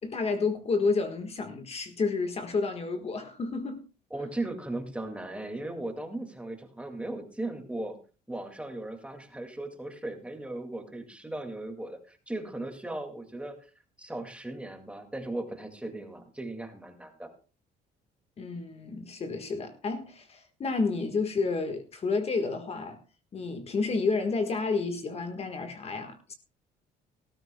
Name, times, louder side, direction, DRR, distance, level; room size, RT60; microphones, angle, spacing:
voice 1, 0.0-3.8 18.4-23.0 23.3-26.3, left 4 dB, 35° left, 1.6 m, -30 dB
voice 2, 4.1-8.0 8.3-13.6 14.0-17.3, right 2 dB, 5° right, 2.2 m, -37 dB
18.5 x 13.5 x 2.3 m
cardioid pair, 110°, 17 cm